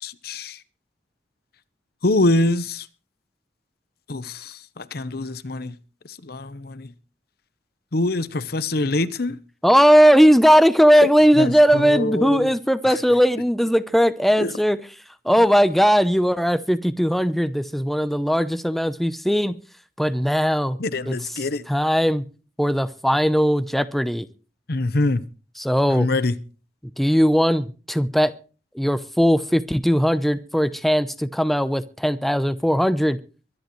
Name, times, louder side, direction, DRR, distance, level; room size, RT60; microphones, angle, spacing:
voice 1, 0.0-0.6 2.0-2.9 4.1-5.8 6.2-6.9 7.9-9.4 11.0-11.1 11.4-12.5 12.8-13.0 14.4-14.6 20.8-21.6 24.7-25.2 25.9-26.4, left 2 dB, 60° left, 0.9 m, -24 dB
voice 2, 9.6-14.8 15.2-19.6 20.0-20.8 21.1-21.2 21.7-22.2 22.6-24.3 25.6-26.1 27.0-28.3 28.8-33.2, equal, ahead, 0.6 m, -18 dB
23.5 x 11.0 x 3.1 m
head